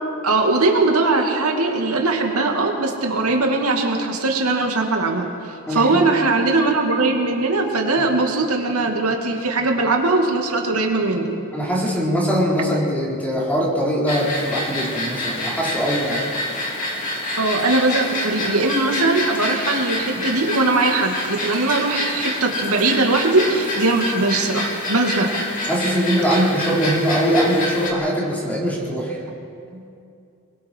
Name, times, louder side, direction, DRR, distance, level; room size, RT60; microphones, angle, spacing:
voice 1, 0.2-11.4 17.4-25.3, right 2 dB, 90° right, 1 dB, 2.3 m, -20 dB
voice 2, 5.7-6.0 11.5-16.3 20.1-20.3 25.7-29.2 29.7-29.8, equal, 10° left, -4 dB, 4.2 m, -22 dB
sound 1, 14.1-27.9, left 1 dB, 40° left, 3.4 m, -27 dB
27.0 x 21.0 x 4.7 m, 2.5 s
head